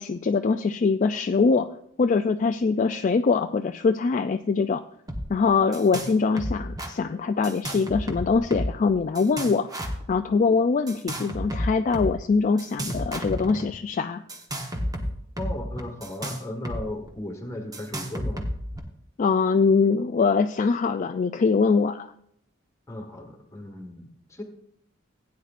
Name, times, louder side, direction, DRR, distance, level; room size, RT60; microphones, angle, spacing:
voice 1, 0.0-1.7 2.0-4.8 5.3-9.7 10.1-14.2 19.2-22.1, left 4 dB, 40° left, 7 dB, 0.3 m, -23 dB
sound 1, 5.1-5.3 5.5-6.1 6.4-6.9 7.4-8.8 9.2-10.1 10.9-12.1 12.6-13.7 14.3-16.8 17.1-17.2 17.7-18.8, equal, 20° right, 1.2 m, -31 dB
voice 2, 15.4-18.4 22.9-24.4, left 1 dB, 15° left, 3 dB, 1.6 m, -36 dB
16.5 x 9.4 x 2.5 m, 0.71 s
head